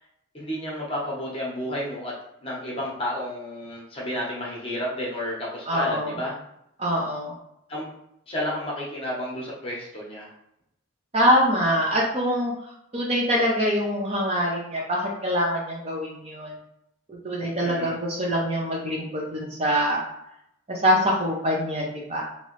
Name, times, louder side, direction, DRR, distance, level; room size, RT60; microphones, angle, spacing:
voice 1, 0.3-2.1 2.4-6.4 7.7-7.9 8.3-10.3 17.6-18.0, left 1 dB, 25° left, -5 dB, 0.8 m, -31 dB
voice 2, 5.7-6.1 6.8-7.3 11.1-12.5 12.9-16.5 17.1-20.0 20.7-22.2, equal, 30° right, -2 dB, 0.6 m, -24 dB
3.0 x 2.8 x 3.0 m, 0.79 s
head